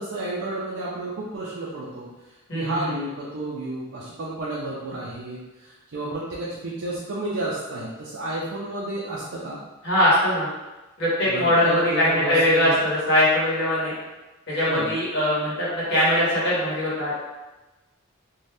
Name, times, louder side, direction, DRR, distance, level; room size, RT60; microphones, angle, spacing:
voice 1, 0.0-2.1 2.5-9.6 11.3-12.8 14.6-14.9, right 2 dB, 65° right, -7 dB, 0.5 m, -31 dB
voice 2, 2.5-2.9 9.8-10.5 11.0-13.9 14.5-17.2, left 1 dB, 50° left, -8 dB, 1.2 m, -21 dB
2.6 x 2.2 x 3.3 m, 1.1 s
head